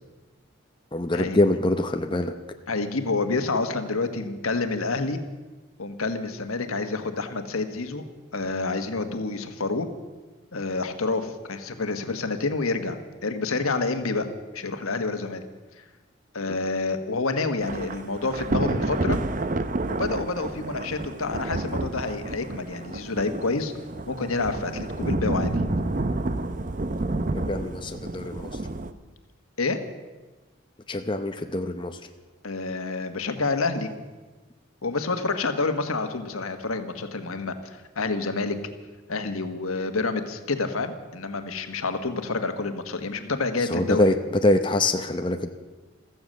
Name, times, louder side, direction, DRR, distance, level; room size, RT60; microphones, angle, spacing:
voice 1, 0.9-2.3 16.4-16.6 27.3-28.6 30.9-32.1 43.6-45.5, left 2 dB, 25° left, 6 dB, 0.7 m, -24 dB
voice 2, 2.7-5.2 5.8-8.0 8.3-9.9 10.5-14.3 14.5-15.4 15.8-15.9 16.3-19.2 19.9-23.7 24.1-25.5 29.6-29.8 32.4-33.9 34.8-38.6 39.1-44.0, left 3 dB, 90° left, 8 dB, 1.4 m, -28 dB
Thunder / Rain, 17.6-28.9, right 2 dB, 40° right, 0.7 m, -29 dB
15.0 x 14.0 x 6.6 m, 1.2 s
head